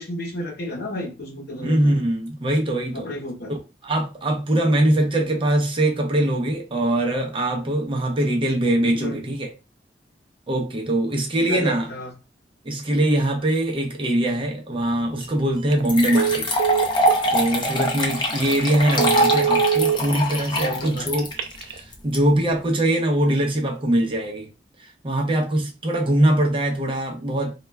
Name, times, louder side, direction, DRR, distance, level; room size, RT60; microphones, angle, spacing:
voice 1, 0.0-2.0 2.9-3.5 5.3-5.4 8.9-9.2 11.5-12.1 20.6-21.1, equal, 60° left, 0.7 m, -32 dB
voice 2, 1.6-3.1 3.5-3.6 3.8-9.5 10.5-11.9 12.6-16.5 17.3-21.3 21.7-24.5 24.8-27.5, right 1 dB, 30° right, 0.5 m, -22 dB
sound 1, 15.2-15.3 15.9-22.2, equal, 25° left, 0.5 m, -23 dB
Telephone, 15.6-15.8 16.1-17.2 17.8-17.9 18.3-18.4 18.8-20.0 21.2-21.8, right 9 dB, 80° right, 0.4 m, -23 dB
2.2 x 2.1 x 3.2 m
head